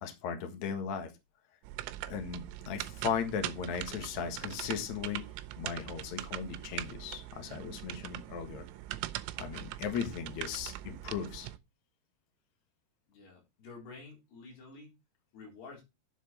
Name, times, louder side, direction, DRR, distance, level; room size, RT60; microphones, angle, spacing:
voice 1, 0.0-1.1 2.1-5.2 5.6-8.6 9.4-11.5, left 7 dB, 75° left, 1.6 m, -37 dB
sound 1, 1.6-11.6, right 15 dB, 85° right, 3.3 m, -42 dB
voice 2, 13.1-14.9 15.3-15.8, left 3 dB, 55° left, 5.7 m, -50 dB
9.4 x 7.4 x 4.3 m
omnidirectional pair, 6.0 m